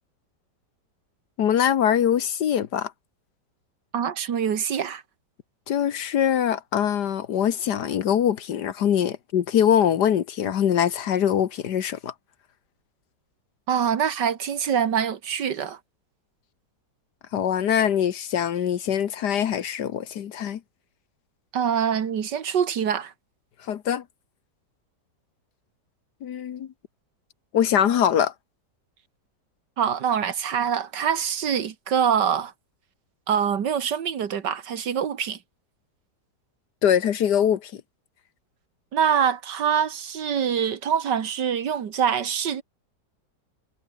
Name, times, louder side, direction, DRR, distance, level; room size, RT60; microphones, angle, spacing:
voice 1, 1.4-2.9 5.7-12.1 17.3-20.6 23.7-24.0 26.2-26.7 27.5-28.3 36.8-37.7, left 9 dB, 75° left, 1.6 m, -23 dB
voice 2, 3.9-5.0 13.7-15.8 21.5-23.1 29.8-32.5 33.3-35.4 38.9-42.6, right 8 dB, 85° right, 2.2 m, -24 dB
omnidirectional pair, 1.8 m